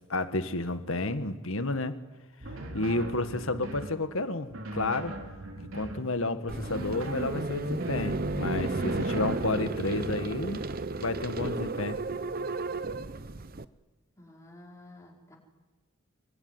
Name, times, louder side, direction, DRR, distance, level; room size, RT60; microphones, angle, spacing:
voice 1, 0.1-2.0 2.7-5.2 5.7-10.6 11.0-12.0, left 2 dB, 70° left, 10 dB, 1.8 m, -31 dB
sound 1, 2.4-4.0 4.5-6.1 6.6-8.2 8.7-10.3, right 1 dB, 70° right, 3.4 m, -40 dB
sound 2, 6.5-13.6, right 2 dB, 40° right, 0.8 m, -33 dB
voice 2, 14.2-15.4, left 1 dB, 15° left, -1 dB, 5.1 m, -51 dB
25.0 x 24.0 x 9.7 m, 1.3 s
head